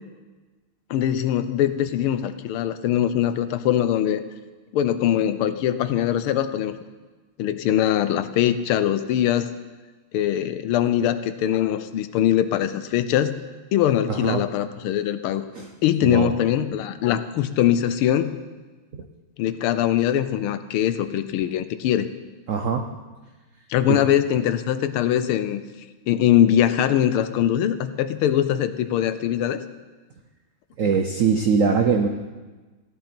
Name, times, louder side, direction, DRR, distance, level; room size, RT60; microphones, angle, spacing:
voice 1, 0.9-4.2 4.7-6.8 7.4-9.5 10.1-13.3 13.7-15.5 15.8-18.3 19.4-22.1 23.7-25.6 26.1-29.6, left 11 dB, 80° left, 12 dB, 1.6 m, -22 dB
voice 2, 14.1-14.4 15.5-15.7 16.0-16.3 18.9-19.0 22.5-22.9 23.9-24.0 30.8-32.1, right 6 dB, 80° right, 5 dB, 0.7 m, -22 dB
16.0 x 11.0 x 4.4 m, 1.3 s
omnidirectional pair, 2.4 m